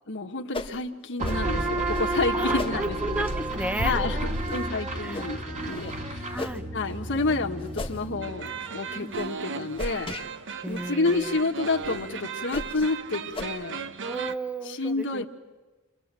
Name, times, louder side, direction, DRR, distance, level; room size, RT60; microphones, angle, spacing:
voice 1, 0.1-3.2 3.8-6.4 6.7-10.1 10.7-13.8 14.6-15.3, left 3 dB, 60° left, 3 dB, 1.5 m, -29 dB
sound 1, 0.5-0.8 1.2-1.4 1.9-2.1 2.6-2.8 3.2-3.5 4.0-4.1 4.4-4.6 5.1-5.3 5.7-5.9 6.3-6.6 7.1-7.3 7.7-8.0 8.5-8.7 9.1-9.3 9.8-10.3 10.7-10.8 11.2-11.3 11.8-12.0 12.5-12.9 13.3-13.4, left 2 dB, 25° left, 1.4 m, -36 dB
sound 2, 1.2-8.6, right 1 dB, 35° right, 2.3 m, -31 dB
voice 2, 2.3-4.7 5.0-5.2 6.3-6.7 8.9-9.2 10.6-11.4 14.1-15.3, right 2 dB, 5° right, 11 dB, 0.8 m, -34 dB
sound 3, 8.2-14.4, right 6 dB, 60° right, 1.0 m, -36 dB
29.5 x 23.5 x 7.6 m, 1.2 s
head